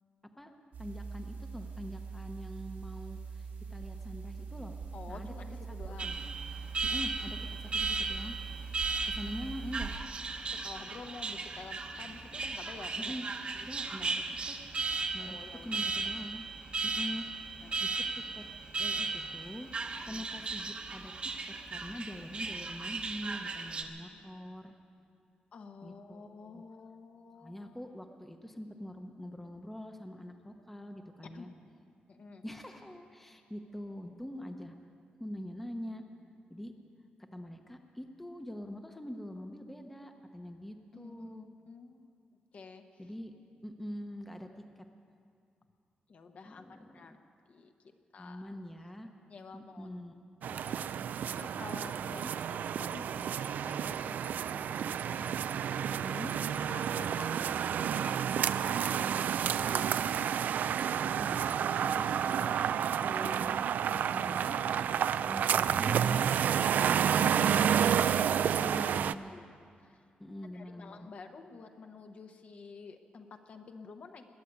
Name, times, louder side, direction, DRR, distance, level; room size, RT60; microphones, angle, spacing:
sound 1, 0.7-10.0, right 5 dB, 85° right, 2.9 m, -43 dB
voice 1, 0.8-4.8 5.1-5.3 5.8-6.1 6.8-8.4 9.1-9.9 13.0-13.3 13.5-14.6 15.1-16.4 16.8-17.3 17.8-18.4 18.8-19.7 20.0-24.7 25.8-26.6 27.4-31.5 32.4-34.7 35.2-36.0 36.5-36.7 37.3-41.5 43.0-43.3 43.6-44.8 46.4-47.2 48.2-49.1 49.5-50.2 52.2-52.3 55.9-56.4 59.7-59.8 61.0-61.5 61.9-62.6 63.0-65.0 65.3-66.3 67.2-67.8 68.7-69.5 70.2-71.1, equal, 5° left, 5 dB, 0.8 m, -44 dB
voice 2, 4.9-6.1 9.4-9.5 10.5-13.1 15.2-15.8 17.6-18.0 20.0-20.2 25.5-27.7 31.3-31.5 32.1-32.4 40.9-41.4 41.7-42.1 42.5-43.0 46.1-47.1 47.5-47.7 48.1-48.6 49.3-49.9 50.5-52.2 52.8-55.3 56.7-59.9 66.9-67.4 68.4-69.5 69.8-70.0 70.5-74.3, left 4 dB, 50° left, 6 dB, 1.0 m, -50 dB
Alarm, 6.0-23.8, right 4 dB, 35° right, 1.0 m, -36 dB
sound 2, 50.4-69.1, right 8 dB, 70° right, 0.3 m, -30 dB
21.0 x 8.3 x 8.2 m, 2.4 s
wide cardioid pair, 155°, 3 cm